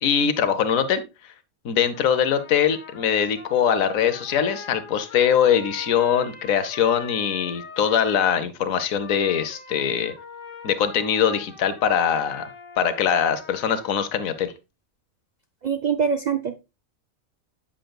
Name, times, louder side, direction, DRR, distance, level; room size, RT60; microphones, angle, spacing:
voice 1, 0.0-1.0 1.6-10.1 10.6-12.5 12.8-14.5, left 8 dB, 90° left, 11 dB, 1.2 m, -22 dB
Trumpet, 1.9-8.4 8.9-14.2, left 4 dB, 70° left, 2.0 m, -43 dB
voice 2, 15.6-16.7, right 6 dB, 90° right, 9 dB, 0.3 m, -24 dB
8.6 x 7.7 x 2.2 m, 0.26 s
omnidirectional pair, 1.4 m